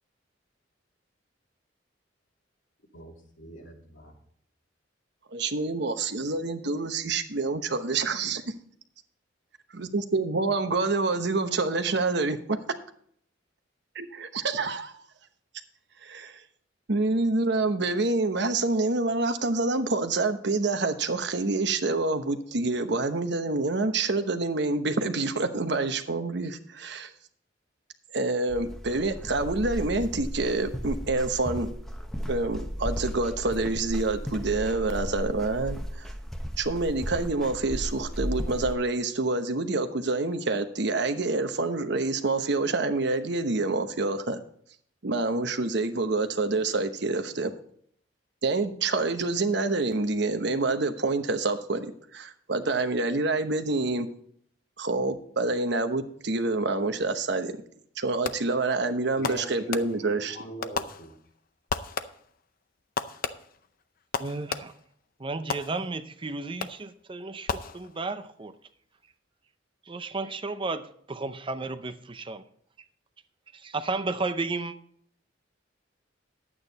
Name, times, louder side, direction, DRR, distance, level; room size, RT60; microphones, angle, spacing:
voice 1, 2.9-4.1 59.2-61.1, right 1 dB, 90° left, -1 dB, 2.8 m, -42 dB
voice 2, 5.3-8.5 9.7-12.6 13.9-15.0 16.0-16.4 16.9-27.1 28.1-31.7 32.3-36.1 36.6-44.4 45.0-47.5 48.4-54.1 54.8-57.6 58.0-60.4, right 3 dB, 65° right, 8 dB, 1.0 m, -27 dB
sound 1, 28.5-38.7, equal, ahead, 0.9 m, -35 dB
Fireworks, 58.2-58.7 59.2-60.2 60.6-61.4 61.7-62.4 63.0-64.9 65.5-66.1 66.6-67.0 67.5-68.2, left 5 dB, 50° left, 0.6 m, -35 dB
voice 3, 64.2-64.7 65.2-68.5 69.9-72.4 73.6-74.7, right 3 dB, 25° right, 11 dB, 0.6 m, -33 dB
11.0 x 8.8 x 4.1 m, 0.63 s
head